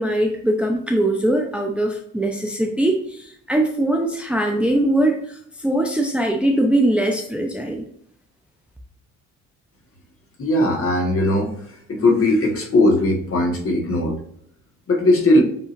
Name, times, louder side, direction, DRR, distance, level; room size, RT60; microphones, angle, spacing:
voice 1, 0.0-5.4 5.6-7.8, right 1 dB, 5° right, 2 dB, 0.6 m, -21 dB
voice 2, 10.4-14.1 14.9-15.4, left 1 dB, 45° left, 1 dB, 1.6 m, -19 dB
7.4 x 2.8 x 2.6 m, 0.68 s
cardioid pair, 90°, 30 cm